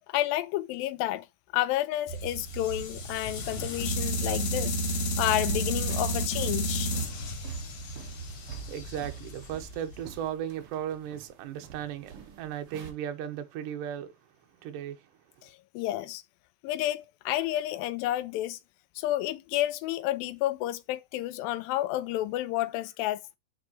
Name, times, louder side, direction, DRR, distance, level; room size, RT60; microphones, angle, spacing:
voice 1, 0.1-1.3 1.5-7.0 15.4-16.2 16.6-18.6 19.0-23.2, left 14 dB, 85° left, 2.3 m, -30 dB
sound 1, 2.1-10.2, equal, 55° left, 2.4 m, -32 dB
sound 2, 5.3-12.9, right 9 dB, 55° right, 1.7 m, -46 dB
voice 2, 8.0-14.1 14.6-15.1, right 10 dB, 75° right, 2.3 m, -36 dB
7.5 x 4.3 x 3.0 m
omnidirectional pair, 4.1 m